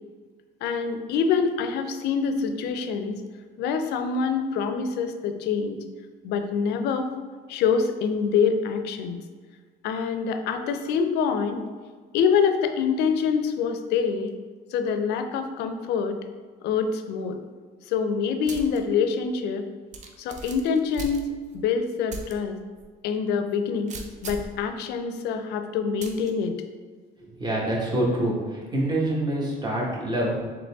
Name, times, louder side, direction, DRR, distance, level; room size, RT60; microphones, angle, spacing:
voice 1, 0.6-3.2 3.6-5.8 6.2-7.1 7.5-9.2 9.8-11.6 12.1-14.3 14.7-16.2 16.6-17.4 17.9-19.6 20.2-21.3 21.5-22.6 23.0-23.9 24.2-26.5, left 6 dB, 80° left, 7 dB, 0.4 m, -25 dB
sound 1, 18.5-18.8 19.2-19.3 19.9-21.6 22.1-22.3 22.8-22.9 23.9-24.6 26.0-26.3, right 3 dB, 45° right, 0.5 m, -38 dB
voice 2, 27.2-30.5, right 1 dB, 25° right, -3 dB, 1.2 m, -26 dB
3.9 x 3.0 x 3.4 m, 1.5 s
cardioid pair, 110°, 17 cm